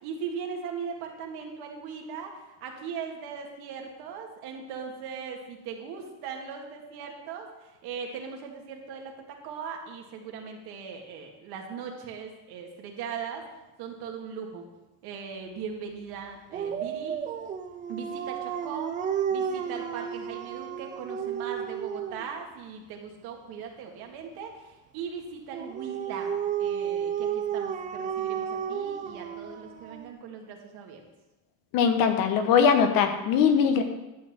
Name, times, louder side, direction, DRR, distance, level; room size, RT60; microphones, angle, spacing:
voice 1, 0.0-2.3 2.6-13.4 13.8-14.6 15.0-17.2 17.9-19.0 19.3-31.0, right 6 dB, 60° right, 2 dB, 2.0 m, -39 dB
Dog, 16.5-22.3 25.5-30.1, right 8 dB, 20° right, 0.3 m, -32 dB
voice 2, 31.7-33.8, left 7 dB, 50° left, 7 dB, 1.1 m, -21 dB
11.5 x 4.3 x 7.2 m, 1.0 s
cardioid pair, 150°, 43 cm